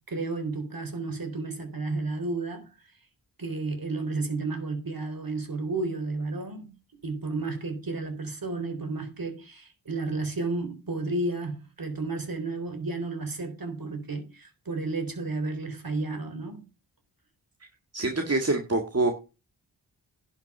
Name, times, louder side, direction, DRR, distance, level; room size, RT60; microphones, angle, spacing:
voice 1, 0.1-2.9 3.4-6.7 7.0-16.7, right 3 dB, 50° right, 3.8 m, -32 dB
voice 2, 17.9-19.1, right 2 dB, 35° right, 1.8 m, -25 dB
11.0 x 6.0 x 6.7 m
cardioid pair, 60°, 45 cm